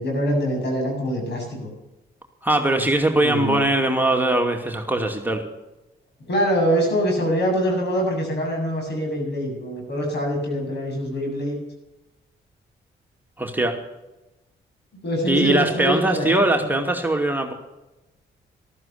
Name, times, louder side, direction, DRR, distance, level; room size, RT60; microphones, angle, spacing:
voice 1, 0.0-1.7 3.2-3.7 6.3-11.6 15.0-16.7, equal, 60° left, 1 dB, 7.8 m, -24 dB
voice 2, 2.4-5.4 13.4-13.8 15.3-17.5, right 1 dB, 10° right, 2 dB, 2.6 m, -21 dB
14.0 x 13.5 x 6.9 m, 0.99 s
supercardioid pair, 60°, 20 cm